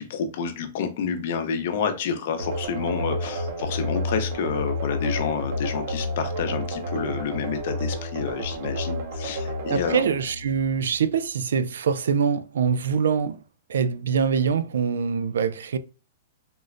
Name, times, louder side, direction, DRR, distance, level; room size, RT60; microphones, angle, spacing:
voice 1, 0.0-10.1, left 6 dB, 55° left, 0.6 m, -29 dB
sound 1, 2.4-11.1, left 1 dB, 55° right, 0.7 m, -30 dB
voice 2, 9.7-13.4 13.7-15.8, right 6 dB, 90° right, 0.3 m, -24 dB
3.7 x 2.1 x 2.4 m
hypercardioid pair, 160°, 0 cm